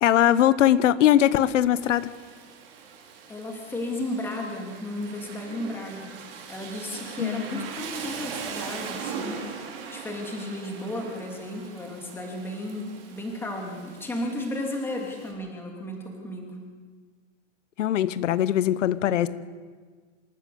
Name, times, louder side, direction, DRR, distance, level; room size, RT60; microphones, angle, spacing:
voice 1, 0.0-2.1 7.2-7.7 17.8-19.3, left 11 dB, 85° left, 15 dB, 1.0 m, -21 dB
Rain, 1.8-15.3, right 6 dB, 50° right, 5.0 m, -40 dB
voice 2, 3.3-6.2 6.5-9.4 9.9-16.6, left 1 dB, 5° left, 0 dB, 2.9 m, -34 dB
27.0 x 14.0 x 7.8 m, 1.5 s
supercardioid pair, 170°, 36 cm